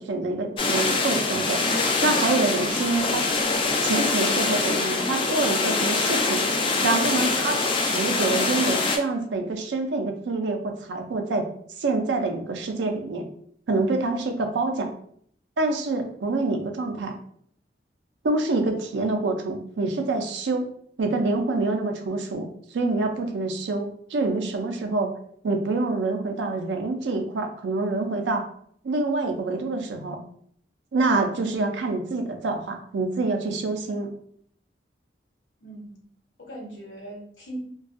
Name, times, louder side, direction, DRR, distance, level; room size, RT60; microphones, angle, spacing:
voice 1, 0.0-1.6 2.0-3.2 3.8-6.5 6.8-11.5 11.8-13.3 13.7-14.9 15.6-17.1 18.2-20.7 21.0-25.1 25.4-28.4 28.8-30.2 30.9-34.1, right 3 dB, 85° right, 4 dB, 0.4 m, -26 dB
sound 1, 0.6-9.0, left 3 dB, 30° left, 0.3 m, -24 dB
voice 2, 35.6-36.0 36.4-37.6, right 1 dB, 80° left, -2 dB, 0.8 m, -39 dB
2.5 x 2.2 x 2.4 m, 0.64 s
head